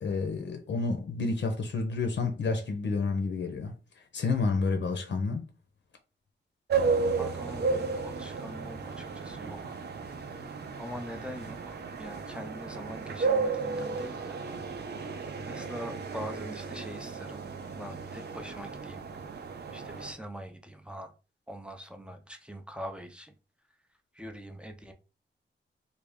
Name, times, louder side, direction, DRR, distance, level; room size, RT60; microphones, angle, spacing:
voice 1, 0.0-3.7 4.1-5.5, left 4 dB, 65° left, 0.7 m, -29 dB
sound 1, 6.7-20.1, right 4 dB, 55° right, 0.5 m, -33 dB
voice 2, 7.2-9.8 10.8-14.4 15.5-17.4 17.8-19.0 19.7-21.1 21.5-23.3 24.1-24.9, equal, 5° right, 0.4 m, -43 dB
3.3 x 2.3 x 3.5 m
wide cardioid pair, 155°, 20 cm